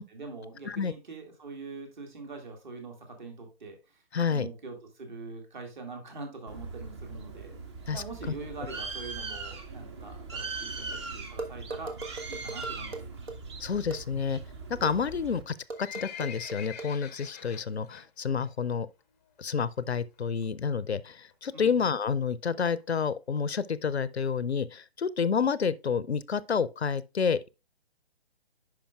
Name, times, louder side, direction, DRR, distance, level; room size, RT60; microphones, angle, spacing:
voice 1, 0.0-4.0 4.3-7.6 7.9-12.0 12.3-13.0 21.5-21.8, right 3 dB, 45° right, 2.2 m, -43 dB
voice 2, 4.1-4.5 7.9-8.0 13.6-14.4 14.8-18.9 19.4-27.5, left 6 dB, 85° left, 0.5 m, -29 dB
Bird, 6.5-15.4, right 4 dB, 25° right, 0.7 m, -40 dB
sound 1, 11.4-13.4 13.9-14.0 14.8-14.9 15.7-16.9, right 3 dB, 70° right, 1.3 m, -38 dB
Livestock farm animals working animals, 15.5-18.0 18.4-18.7 19.0-19.1 19.8-19.9 20.1-20.2 20.4-20.5 21.0-21.3 21.9-22.0 22.2-22.3 22.5-22.6 22.8-22.9 23.4-23.5 23.9-24.0 24.5-24.6, left 8 dB, 15° left, 0.5 m, -44 dB
10.5 x 5.0 x 2.3 m
figure-of-eight pair, 135°, 31 cm